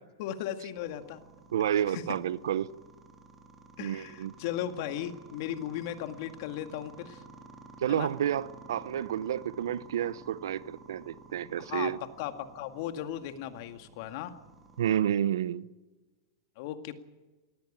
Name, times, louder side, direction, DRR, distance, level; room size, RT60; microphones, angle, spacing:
voice 1, 0.2-1.2 1.9-2.0 3.8-7.2 7.9-8.1 11.6-11.9 12.2-14.3 16.6-16.9, left 11 dB, 55° left, 2.0 m, -36 dB
sound 1, 0.8-15.0, right 3 dB, 15° right, 3.3 m, -52 dB
voice 2, 1.5-2.7 3.8-4.4 7.8-12.0 14.8-15.7, right 10 dB, 80° right, 0.8 m, -30 dB
18.5 x 16.5 x 8.7 m
hypercardioid pair, 130°, 2 cm